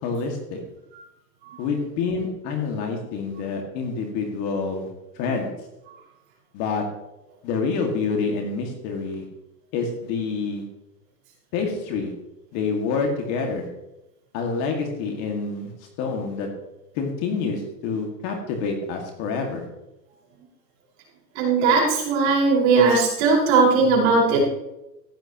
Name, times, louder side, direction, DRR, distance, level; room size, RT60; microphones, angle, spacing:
voice 1, 0.0-0.6 1.6-4.9 5.2-5.5 6.5-6.8 7.4-9.2 9.7-10.6 11.5-12.1 12.5-13.7 14.3-15.7 16.0-16.5 17.0-19.6, left 4 dB, 30° left, 2 dB, 2.0 m, -27 dB
voice 2, 21.3-24.4, right 4 dB, 40° right, -2 dB, 5.1 m, -18 dB
15.5 x 11.0 x 3.0 m, 0.90 s
hypercardioid pair, 150°, 50 cm